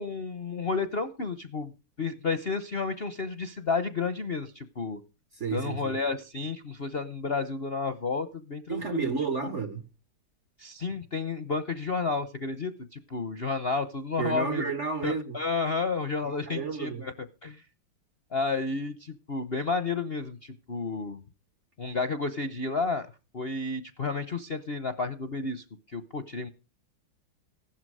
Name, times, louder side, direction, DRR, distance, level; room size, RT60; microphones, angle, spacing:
voice 1, 0.0-1.7 2.0-5.0 5.5-9.0 10.6-14.6 15.0-17.1 17.4-17.6 18.3-21.2 21.8-23.1 23.3-26.5, left 4 dB, 45° left, 0.8 m, -31 dB
voice 2, 5.3-6.0 8.7-9.9 14.2-15.4 16.2-17.1, right 5 dB, 45° right, 1.0 m, -31 dB
16.5 x 12.0 x 4.8 m
omnidirectional pair, 2.3 m